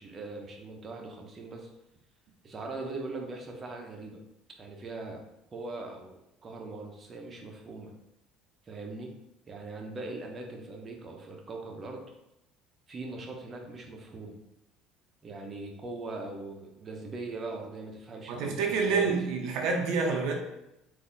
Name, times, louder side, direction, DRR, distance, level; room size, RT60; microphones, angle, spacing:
voice 1, 0.0-1.7 2.4-4.2 4.6-5.2 5.5-7.9 8.7-9.1 9.5-12.0 12.9-14.4 15.2-19.1, right 3 dB, 30° right, 2 dB, 0.9 m, -40 dB
voice 2, 18.3-20.4, right 4 dB, 75° right, 1 dB, 0.7 m, -28 dB
4.0 x 2.8 x 4.0 m, 0.86 s
supercardioid pair, 105°, 0 cm